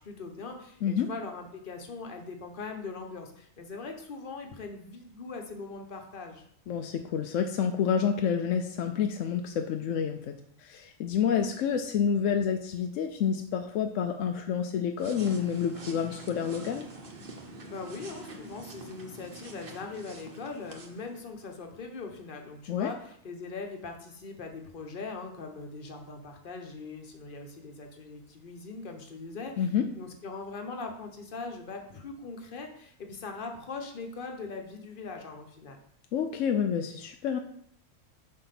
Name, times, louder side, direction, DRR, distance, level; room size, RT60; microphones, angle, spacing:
voice 1, 0.0-6.5 17.7-29.7 29.9-35.8, left 4 dB, 40° left, 4 dB, 1.1 m, -41 dB
voice 2, 6.7-16.9 22.7-22.9 29.6-29.9 36.1-37.4, left 7 dB, 70° left, 5 dB, 0.9 m, -28 dB
sound 1, 15.0-21.4, right 2 dB, 45° right, 1.1 m, -46 dB
5.6 x 4.2 x 5.8 m, 0.67 s
omnidirectional pair, 1.5 m